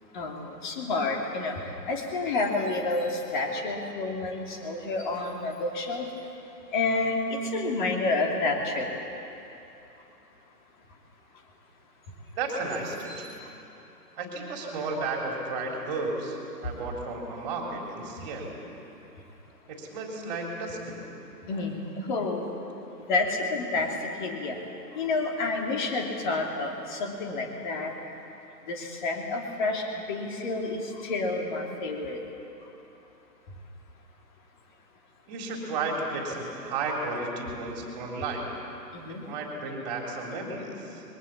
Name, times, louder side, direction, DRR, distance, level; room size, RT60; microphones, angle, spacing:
voice 1, 0.1-1.6 1.9-6.1 6.7-8.9 13.1-13.2 21.5-22.4 23.1-23.9 24.2-24.6 24.9-27.9 28.7-32.2 38.9-39.2, left 3 dB, 30° left, 1 dB, 2.9 m, -29 dB
voice 2, 12.4-13.3 14.2-18.5 19.7-21.1 35.3-38.4 39.1-41.0, right 3 dB, 25° right, 0 dB, 3.7 m, -33 dB
24.5 x 22.0 x 7.4 m, 2.9 s
figure-of-eight pair, 145°, 50 cm